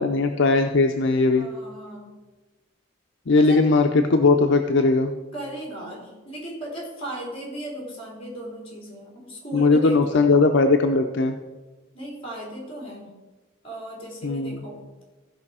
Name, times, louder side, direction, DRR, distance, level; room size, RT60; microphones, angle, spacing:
voice 1, 0.0-1.5 3.3-5.1 9.5-11.4 14.2-14.6, left 3 dB, 60° left, 5 dB, 0.5 m, -19 dB
voice 2, 1.3-2.1 3.4-3.6 5.3-10.3 11.9-13.1 13.6-14.8, right 1 dB, 30° left, -3 dB, 3.7 m, -36 dB
15.0 x 5.4 x 4.9 m, 1.2 s
head